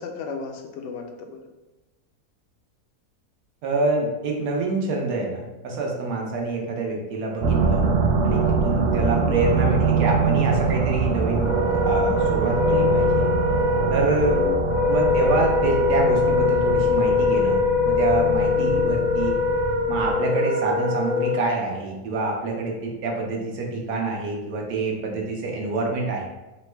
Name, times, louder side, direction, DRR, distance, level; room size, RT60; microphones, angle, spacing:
voice 1, 0.0-1.4 9.2-9.4 14.3-14.6 18.6-18.9, left 5 dB, 70° left, 4 dB, 0.7 m, -35 dB
voice 2, 3.6-7.8 8.2-11.5 11.8-13.3 13.9-14.5 14.9-17.6 17.9-19.4 19.9-26.2, right 3 dB, 85° right, -1 dB, 1.3 m, -26 dB
sound 1, 7.4-20.1, right 4 dB, 65° right, 0.7 m, -24 dB
Wind instrument woodwind instrument, 11.3-21.4, left 4 dB, 10° left, 0.5 m, -22 dB
3.9 x 2.1 x 4.3 m, 1.1 s
omnidirectional pair, 1.7 m